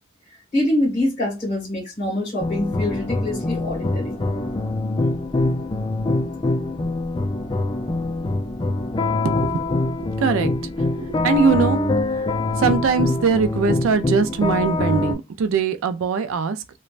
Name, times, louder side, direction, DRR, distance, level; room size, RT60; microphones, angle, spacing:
voice 1, 0.5-4.2, left 1 dB, 40° left, 1.7 m, -24 dB
sound 1, 2.4-15.1, left 2 dB, 25° left, 0.4 m, -24 dB
voice 2, 9.2-10.5 10.9-11.8 12.1-12.3 12.6-16.6, right 5 dB, 85° right, 0.4 m, -22 dB
3.1 x 2.1 x 2.4 m
head